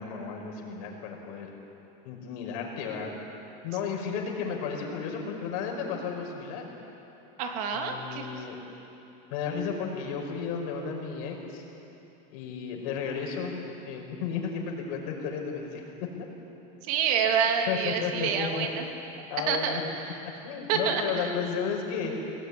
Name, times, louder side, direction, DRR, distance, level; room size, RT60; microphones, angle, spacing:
voice 1, 0.0-1.5 2.0-3.1 3.6-6.7 7.7-8.6 9.3-11.6 12.3-13.5 13.8-15.8 17.7-18.7 19.3-19.8 20.4-22.1, left 6 dB, 80° left, 0 dB, 5.5 m, -33 dB
voice 2, 7.4-8.4 16.8-18.8 19.5-19.8 20.0-20.1 20.7-21.3, right 6 dB, 90° right, 3 dB, 2.9 m, -28 dB
21.5 x 18.5 x 9.8 m, 3.0 s
cardioid pair, 175°, 19 cm